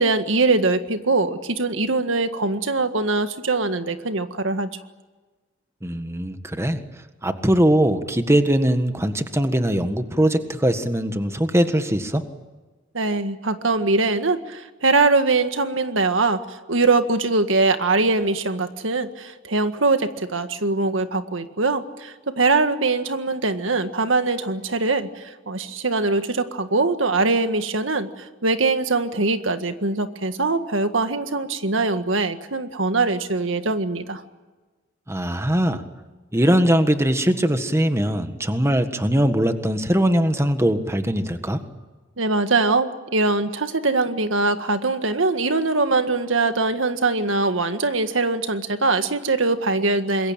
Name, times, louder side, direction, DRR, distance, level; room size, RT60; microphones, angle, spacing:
voice 1, 0.0-4.7 12.9-34.2 42.2-50.3, right 3 dB, 90° right, 8 dB, 1.8 m, -22 dB
voice 2, 5.8-6.8 7.2-12.2 35.1-35.8 36.3-41.6, equal, 15° right, 8 dB, 1.6 m, -21 dB
26.5 x 22.0 x 9.0 m, 1.2 s
head